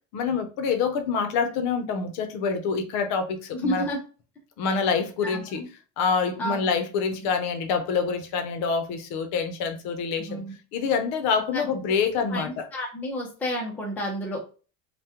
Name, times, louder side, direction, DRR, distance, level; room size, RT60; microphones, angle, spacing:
voice 1, 0.1-3.9 4.6-5.6 6.0-10.4 10.7-12.6, left 5 dB, 55° left, 0.6 m, -26 dB
voice 2, 3.5-4.0 5.2-5.7 6.4-6.6 10.2-10.5 11.5-11.9 12.3-14.4, equal, 5° left, 0.4 m, -31 dB
3.5 x 2.1 x 2.8 m
cardioid pair, 180°, 35 cm